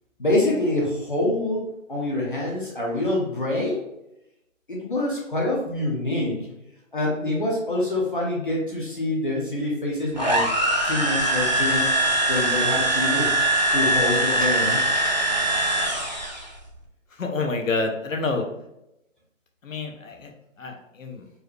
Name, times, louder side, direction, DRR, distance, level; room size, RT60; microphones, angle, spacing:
voice 1, 0.2-3.9 4.7-6.5 6.9-10.5 10.8-11.9 12.3-13.3 13.7-15.3, left 1 dB, 40° left, -3 dB, 0.7 m, -26 dB
sound 1, 10.2-16.5, right 1 dB, 35° right, 0.4 m, -22 dB
voice 2, 17.2-18.4 19.6-20.3 20.6-21.2, left 3 dB, 75° left, 3 dB, 0.9 m, -28 dB
4.6 x 2.1 x 3.1 m, 0.86 s
hypercardioid pair, 175°, 40 cm